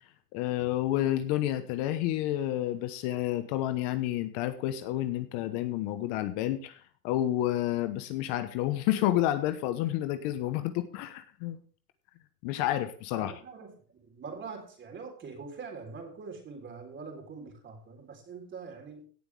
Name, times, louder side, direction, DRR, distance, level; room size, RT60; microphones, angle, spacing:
voice 1, 0.3-11.6 12.4-13.3, left 13 dB, 50° left, 10 dB, 1.1 m, -30 dB
voice 2, 13.1-19.0, right 5 dB, 25° right, 3 dB, 3.7 m, -44 dB
17.0 x 8.1 x 3.4 m, 0.43 s
supercardioid pair, 135°, 48 cm